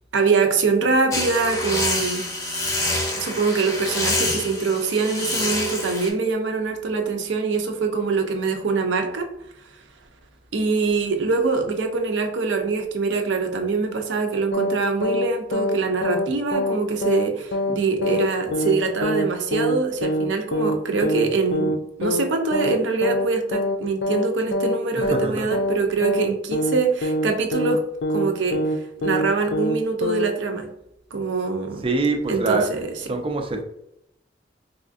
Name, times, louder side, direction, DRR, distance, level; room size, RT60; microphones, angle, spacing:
voice 1, 0.1-2.3 3.2-9.3 10.5-27.8 28.1-28.6 29.0-30.7 31.1-31.8 32.3-32.6, right 4 dB, 80° right, 4 dB, 0.6 m, -23 dB
sound 1, 1.1-6.1, left 1 dB, 15° left, 0.6 m, -26 dB
sound 2, 14.5-14.8 15.0-15.3 15.5-16.3 16.5-16.8 17.0-17.3 17.5-17.8 18.0-18.3 18.5-18.8 19.0-19.3 19.5-19.8 20.0-20.3 20.5-20.8 21.0-21.3 21.5-21.8 22.0-22.3 22.5-22.8 23.0-23.3 23.5-23.8 24.0-24.3 24.5-24.8 25.0-25.3 25.5-25.8 26.0-26.3 26.5-26.8 27.0-27.3 27.5-27.8 28.0-28.3 28.5-28.8 29.0-29.3 29.5-29.8 30.0-30.3, left 1 dB, 65° left, 0.4 m, -24 dB
voice 2, 25.0-25.5 31.8-32.8 33.0-33.6, right 3 dB, 30° right, 4 dB, 0.4 m, -24 dB
4.1 x 2.5 x 2.4 m, 0.80 s
head